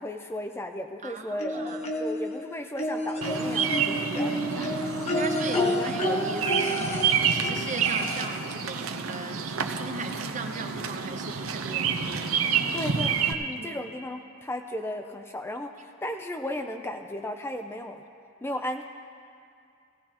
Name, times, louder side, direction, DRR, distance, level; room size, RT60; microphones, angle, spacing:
voice 1, 0.0-4.7 5.5-6.0 12.7-18.0 18.4-18.8, left 1 dB, 10° left, 5 dB, 0.4 m, -35 dB
voice 2, 1.0-1.8 4.2-12.0 13.6-13.8, right 3 dB, 35° right, 6 dB, 0.7 m, -38 dB
sound 1, 1.4-2.3 2.8-8.5 9.7-9.8 10.1-10.2, equal, 30° left, 1.0 m, -30 dB
Bird vocalization bird call bird song, 3.2-13.3, right 6 dB, 85° right, 0.7 m, -29 dB
17.0 x 17.0 x 2.9 m, 2.4 s
head